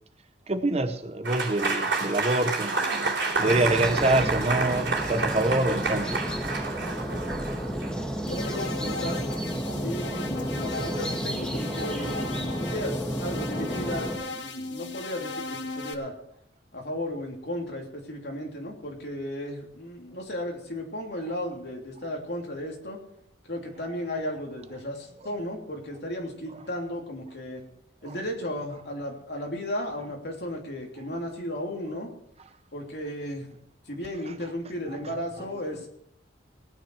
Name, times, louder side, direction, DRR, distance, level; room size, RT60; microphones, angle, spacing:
voice 1, 0.5-2.8 3.4-6.2 7.4-7.5 7.9-8.1 25.2-25.3 26.5-26.6 28.0-28.2 34.4-34.5 34.8-35.1 35.5-35.6, right 2 dB, 35° right, 0.8 m, -26 dB
Applause / Crowd, 1.2-8.1, right 3 dB, 80° right, 3.0 m, -29 dB
sound 1, 3.4-14.2, equal, 5° left, 2.2 m, -32 dB
sound 2, 8.3-15.9, left 3 dB, 80° left, 1.5 m, -36 dB
voice 2, 8.3-9.2 9.8-12.2 12.6-16.1 16.7-23.0 23.5-27.6 28.0-32.1 32.7-33.6 33.9-35.9, left 1 dB, 60° left, 3.0 m, -35 dB
18.5 x 9.5 x 4.8 m
head